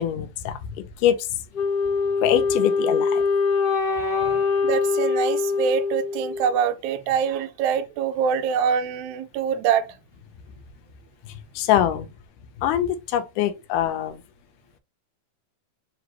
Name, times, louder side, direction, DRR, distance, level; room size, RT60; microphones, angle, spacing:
voice 1, 0.0-1.4 2.2-3.2 4.2-4.4 11.2-12.1 12.6-14.2, left 11 dB, 85° left, 2.1 m, -24 dB
Wind instrument woodwind instrument, 1.5-6.6, left 4 dB, 45° left, 1.4 m, -23 dB
voice 2, 4.6-9.9, right 7 dB, 80° right, 1.7 m, -24 dB
5.0 x 3.0 x 3.0 m
omnidirectional pair, 3.7 m